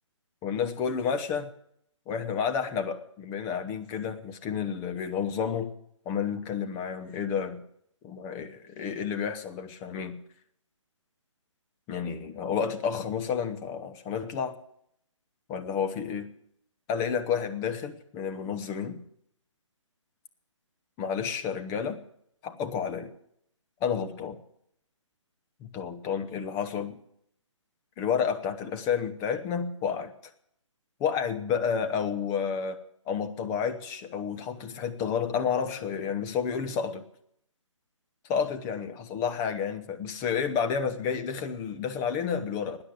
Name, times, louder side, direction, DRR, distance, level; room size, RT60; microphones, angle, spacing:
voice 1, 0.4-1.5 2.1-5.7 6.1-7.6 8.0-10.2 11.9-14.6 15.5-16.3 16.9-19.0 21.0-22.0 22.4-23.1 23.8-24.4 25.6-27.0 28.0-30.1 31.0-32.8 33.1-37.1 38.3-42.8, left 7 dB, 20° left, 7 dB, 0.9 m, -30 dB
13.0 x 9.7 x 9.2 m, 0.72 s
figure-of-eight pair, 145°, 16 cm